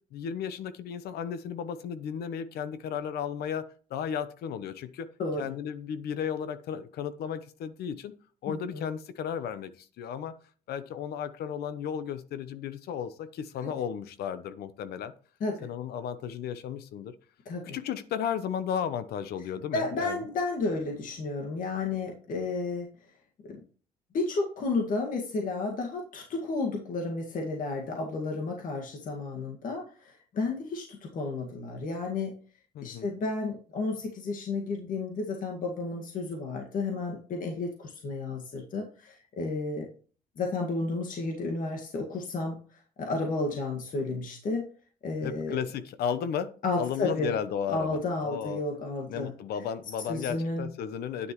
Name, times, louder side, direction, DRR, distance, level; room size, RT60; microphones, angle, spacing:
voice 1, 0.1-5.1 5.4-8.1 8.4-10.4 10.7-15.1 15.6-17.1 17.7-20.2 32.7-33.1 45.2-48.6 49.1-51.3, left 8 dB, 70° left, 13 dB, 0.9 m, -34 dB
voice 2, 5.2-5.5 8.5-8.8 13.6-13.7 15.4-15.7 17.5-17.8 19.7-22.9 23.5-23.6 24.1-32.4 32.8-39.9 40.4-44.7 45.0-45.6 46.6-47.3 47.7-49.3 50.1-50.7, left 3 dB, 55° left, 1 dB, 2.0 m, -32 dB
9.7 x 9.7 x 3.1 m, 0.41 s
cardioid pair, 110°, 17 cm